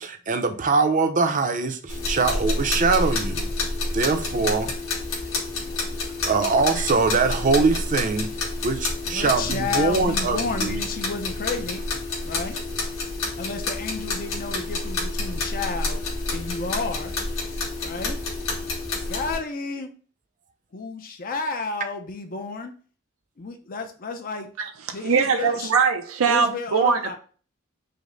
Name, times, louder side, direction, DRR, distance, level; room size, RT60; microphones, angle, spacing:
voice 1, 0.0-3.5 3.9-4.7 6.3-8.3 8.6-10.7, right 4 dB, 40° right, 0.5 m, -22 dB
sound 1, 1.9-19.4, left 2 dB, 80° left, 1.7 m, -29 dB
voice 2, 9.1-11.8 12.2-12.6 13.4-16.0 16.3-17.1 17.8-18.2 19.1-19.9 20.7-22.7 23.4-24.5 24.9-25.7 26.3-27.2, left 4 dB, 45° left, 0.5 m, -31 dB
voice 3, 25.0-27.2, right 6 dB, 85° right, 0.5 m, -21 dB
5.1 x 2.1 x 3.8 m
head